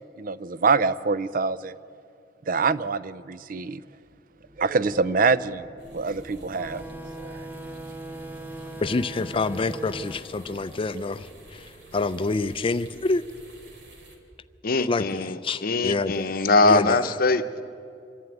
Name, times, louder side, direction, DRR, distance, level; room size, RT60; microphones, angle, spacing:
voice 1, 0.0-1.8 2.5-3.8 4.6-5.7 5.9-6.8 7.2-7.5, right 4 dB, 50° right, 16 dB, 0.5 m, -25 dB
sound 1, 4.0-13.4 13.7-14.0, equal, 30° right, 2.4 m, -50 dB
sound 2, 5.8-14.2, right 2 dB, 75° right, 3.0 m, -50 dB
sound 3, 6.5-11.7, right 2 dB, 10° right, 0.7 m, -40 dB
voice 2, 8.8-13.2 14.8-16.4 16.6-17.0, left 3 dB, 30° left, 14 dB, 0.4 m, -27 dB
voice 3, 14.6-17.6, left 3 dB, 55° left, 10 dB, 0.8 m, -22 dB
25.5 x 11.0 x 9.2 m, 2.5 s
head